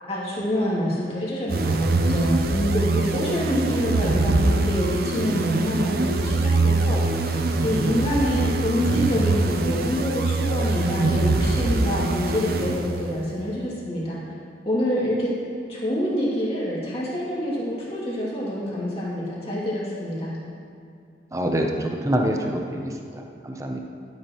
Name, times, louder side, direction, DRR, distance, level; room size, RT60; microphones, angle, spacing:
voice 1, 0.0-14.2 14.6-15.3 15.7-20.3, equal, 35° left, -7 dB, 2.6 m, -26 dB
sound 1, 1.5-13.2, right 2 dB, 55° right, 0.6 m, -23 dB
voice 2, 21.3-23.8, equal, 20° right, 2 dB, 0.7 m, -26 dB
12.0 x 8.9 x 3.1 m, 2.4 s
head